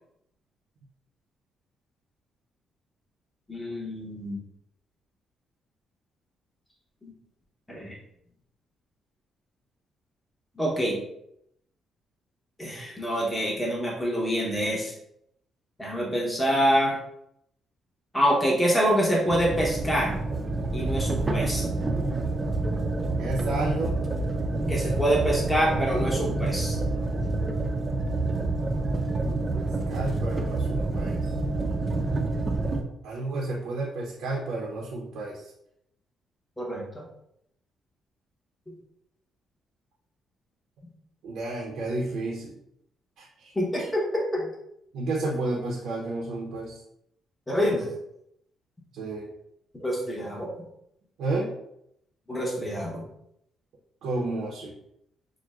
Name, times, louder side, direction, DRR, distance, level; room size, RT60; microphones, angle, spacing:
voice 1, 3.5-4.4 7.0-7.1 7.7-7.9 10.6-11.0 12.6-14.9 15.8-17.0 18.1-20.2 20.7-21.6 24.7-26.8 29.5-29.6 36.6-37.0 43.5-44.5 47.5-47.9 49.7-50.5 52.3-53.0, equal, 10° left, -3 dB, 1.0 m, -26 dB
sound 1, 19.3-32.8, right 2 dB, 25° right, 0.6 m, -28 dB
voice 2, 23.2-24.0 29.5-31.2 33.0-35.4 41.2-42.5 43.2-43.5 43.8-43.9 44.9-46.8 48.9-49.3 51.2-51.5 54.0-54.8, right 2 dB, 80° right, -4 dB, 0.8 m, -31 dB
6.0 x 2.2 x 2.4 m, 0.77 s
cardioid pair, 90°, 0 cm